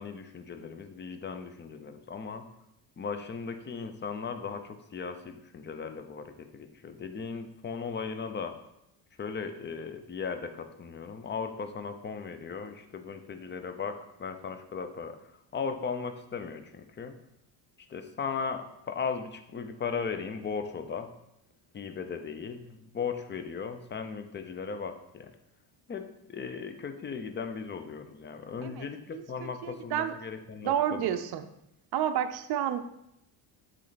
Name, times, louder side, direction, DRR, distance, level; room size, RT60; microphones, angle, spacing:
voice 1, 0.0-2.5 3.0-8.6 9.2-15.2 15.5-17.1 17.9-21.1 21.7-25.3 25.9-31.2, left 5 dB, 25° left, 8 dB, 0.5 m, -37 dB
voice 2, 29.1-30.1 30.6-31.5 31.9-32.8, right 10 dB, 55° right, 8 dB, 0.6 m, -30 dB
7.4 x 3.2 x 4.0 m, 0.82 s
cardioid pair, 110°, 48 cm